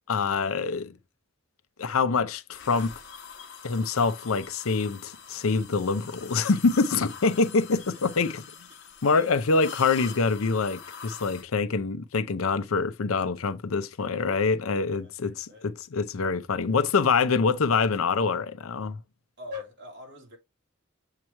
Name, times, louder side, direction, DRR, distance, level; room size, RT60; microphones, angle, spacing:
voice 1, 0.1-1.0 1.8-2.9 3.6-8.7 9.0-19.0, left 4 dB, 90° left, 0.6 m, -25 dB
sound 1, 2.5-11.4, left 6 dB, 55° left, 1.2 m, -44 dB
voice 2, 14.9-15.7 19.4-20.4, left 4 dB, 55° right, 3.2 m, -43 dB
7.4 x 3.0 x 4.4 m
head